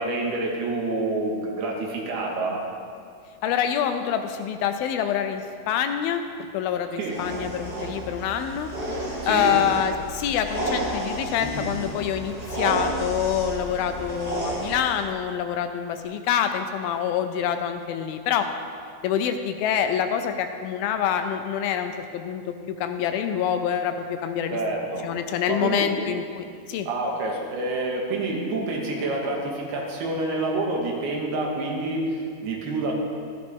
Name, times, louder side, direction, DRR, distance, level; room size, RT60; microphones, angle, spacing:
voice 1, 0.0-2.6 7.0-7.2 9.2-9.6 24.5-25.1 25.5-25.9 26.9-32.9, right 2 dB, 85° right, -1 dB, 3.6 m, -27 dB
voice 2, 3.4-6.2 6.5-8.7 9.3-18.5 19.0-24.6 25.0-26.9, left 8 dB, 80° left, 7 dB, 2.3 m, -26 dB
sound 1, 7.0-15.0, right 1 dB, 25° right, 0.9 m, -31 dB
14.0 x 12.0 x 3.5 m, 2.2 s
omnidirectional pair, 4.5 m